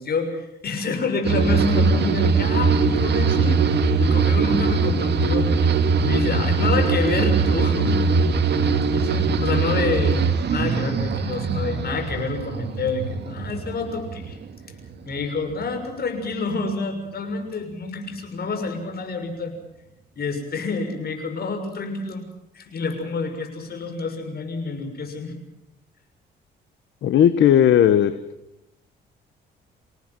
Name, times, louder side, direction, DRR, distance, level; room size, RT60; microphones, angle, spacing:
voice 1, 0.0-5.5 6.0-8.0 8.9-14.4 15.0-19.5 20.1-22.2 22.5-25.4, left 3 dB, 50° left, 6 dB, 6.5 m, -28 dB
sound 1, 1.2-14.6 14.9-15.5, right 4 dB, 60° right, 2.3 m, -21 dB
voice 2, 27.0-28.1, left 10 dB, 70° left, 12 dB, 1.3 m, -16 dB
27.5 x 18.0 x 7.6 m, 0.88 s
cardioid pair, 90°, 20 cm